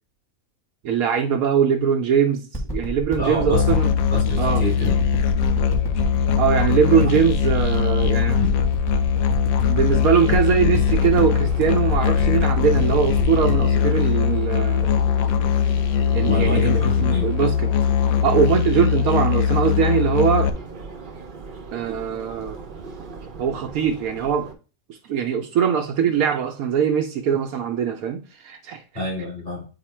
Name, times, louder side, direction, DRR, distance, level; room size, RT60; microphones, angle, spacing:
voice 1, 0.8-3.9 4.4-4.6 6.4-8.4 9.7-14.9 16.1-17.7 18.2-20.5 21.7-22.6 23.4-24.5 25.0-28.8, right 7 dB, 90° right, 1.1 m, -21 dB
sound 1, 2.5-15.3 15.9-16.0, equal, 15° left, 1.6 m, -29 dB
voice 2, 3.2-3.8 4.1-5.0 6.9-7.2 8.3-8.6 16.2-17.3 28.9-29.7, left 1 dB, 40° left, 3.9 m, -27 dB
Musical instrument, 3.5-20.5, left 7 dB, 85° left, 1.1 m, -21 dB
Subway metro underground, 9.5-24.5, right 4 dB, 45° right, 0.7 m, -37 dB
8.1 x 2.8 x 4.3 m
omnidirectional pair, 1.4 m